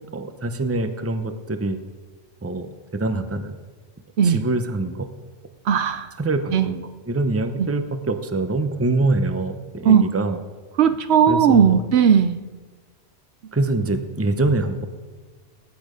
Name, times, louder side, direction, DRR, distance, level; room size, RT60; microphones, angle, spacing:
voice 1, 0.1-1.8 2.4-3.5 4.2-5.1 6.2-10.4 11.3-11.8 13.5-14.9, right 2 dB, 15° right, 8 dB, 0.7 m, -24 dB
voice 2, 5.7-6.1 6.5-6.7 9.8-10.0 10.8-12.4, right 7 dB, 75° right, 11 dB, 0.9 m, -16 dB
20.0 x 8.8 x 5.1 m, 1.4 s
omnidirectional pair, 1.1 m